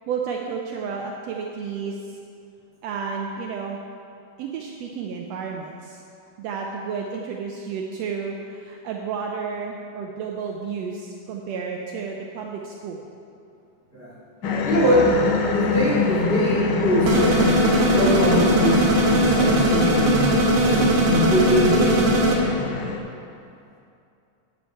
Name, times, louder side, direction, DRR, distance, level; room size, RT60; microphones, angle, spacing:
voice 1, 0.1-2.2 2.8-3.8 4.4-6.0 6.4-13.0 14.4-14.7, right 5 dB, 90° right, 0 dB, 1.4 m, -31 dB
sound 1, 14.4-23.0, left 7 dB, 80° left, 2.3 m, -25 dB
voice 2, 14.6-15.2 15.5-22.1, equal, 20° left, -9 dB, 2.5 m, -23 dB
sound 2, 17.1-22.4, right 2 dB, 60° right, 2.1 m, -20 dB
11.5 x 7.9 x 4.5 m, 2.6 s
omnidirectional pair, 3.7 m